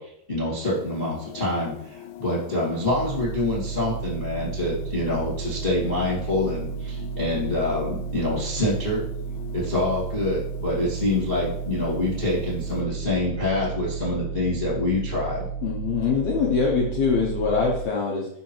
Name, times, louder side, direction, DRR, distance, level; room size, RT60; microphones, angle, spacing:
voice 1, 0.0-9.0 9.5-15.4, left 2 dB, 45° left, -5 dB, 0.7 m, -26 dB
sound 1, 0.6-12.8, left 10 dB, 90° left, 3.0 m, -43 dB
sound 2, 2.8-17.8, right 6 dB, 90° right, 1.8 m, -33 dB
voice 2, 15.6-18.3, left 5 dB, 70° left, -3 dB, 2.5 m, -23 dB
6.4 x 6.1 x 4.5 m, 0.71 s
omnidirectional pair, 5.3 m